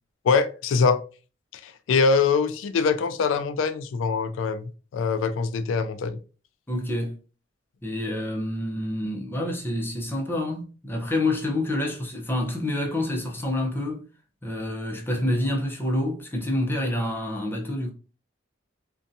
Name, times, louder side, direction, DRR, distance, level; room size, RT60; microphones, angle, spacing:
voice 1, 0.2-1.0 1.5-6.2, left 5 dB, 85° left, 0.3 m, -23 dB
voice 2, 6.7-7.2 7.8-14.0 14.4-17.9, left 1 dB, 10° left, 0.6 m, -27 dB
2.6 x 2.2 x 2.6 m
head